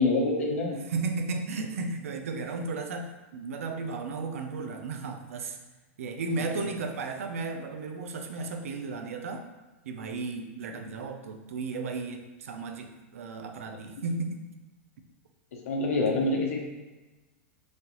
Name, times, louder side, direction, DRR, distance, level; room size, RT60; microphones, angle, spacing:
voice 1, 0.0-0.8 15.7-16.6, left 2 dB, 75° left, 0 dB, 0.8 m, -26 dB
voice 2, 0.9-5.6 6.0-9.5 9.8-14.4 16.1-16.2, right 3 dB, 80° right, 5 dB, 0.5 m, -34 dB
3.2 x 2.8 x 3.8 m, 1.1 s
hypercardioid pair, 100°, 7 cm